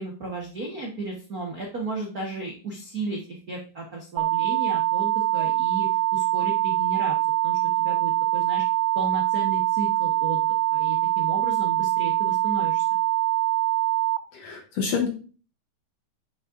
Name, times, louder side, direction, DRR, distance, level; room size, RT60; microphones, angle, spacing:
voice 1, 0.0-7.1 7.4-8.6 8.9-12.9, right 2 dB, 70° right, -1 dB, 0.8 m, -34 dB
sound 1, 4.2-14.2, right 20 dB, 85° right, 2.3 m, -24 dB
voice 2, 14.3-15.1, left 6 dB, 65° left, 3 dB, 1.7 m, -27 dB
9.6 x 6.5 x 2.6 m, 0.37 s
omnidirectional pair, 3.9 m